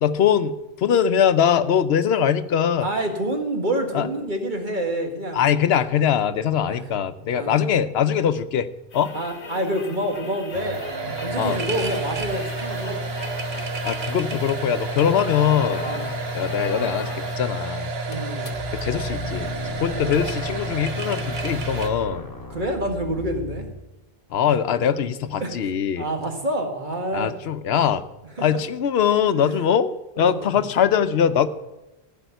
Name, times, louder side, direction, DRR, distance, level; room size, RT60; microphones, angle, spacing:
voice 1, 0.0-2.9 3.9-4.1 5.3-8.7 8.9-9.1 11.1-11.6 13.8-15.9 16.3-17.9 18.7-19.5 19.8-22.3 24.3-26.1 27.1-28.0 28.4-31.5, left 8 dB, 85° left, 12 dB, 0.9 m, -22 dB
voice 2, 2.8-5.5 6.7-6.9 7.3-7.7 9.1-10.8 11.2-13.0 15.8-16.1 18.1-18.6 19.9-20.0 22.5-23.7 25.4-25.6 26.0-27.3 28.4-28.5 29.3-29.6 30.2-30.6, right 1 dB, 50° right, 3 dB, 1.8 m, -27 dB
sound 1, 8.9-17.5 17.8-17.9 18.0-18.8 19.8-19.9, left 4 dB, 60° left, 1.2 m, -38 dB
sound 2, 10.5-21.9, right 2 dB, 75° right, 1.4 m, -30 dB
sound 3, 18.5-23.8, left 3 dB, 20° left, 1.6 m, -36 dB
15.0 x 5.5 x 9.1 m, 0.98 s
omnidirectional pair, 1.0 m